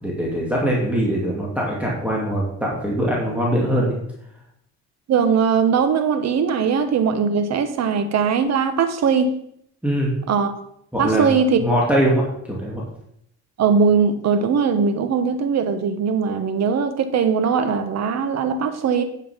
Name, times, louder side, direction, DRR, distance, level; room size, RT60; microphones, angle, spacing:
voice 1, 0.0-4.0 9.8-10.1 10.9-11.3 11.6-12.8, equal, 5° right, 2.9 m, -22 dB
voice 2, 5.1-9.3 10.3-10.5 11.0-11.6 13.6-19.0, right 6 dB, 60° right, 1.4 m, -20 dB
9.7 x 7.4 x 5.3 m
cardioid pair, 115°, 30 cm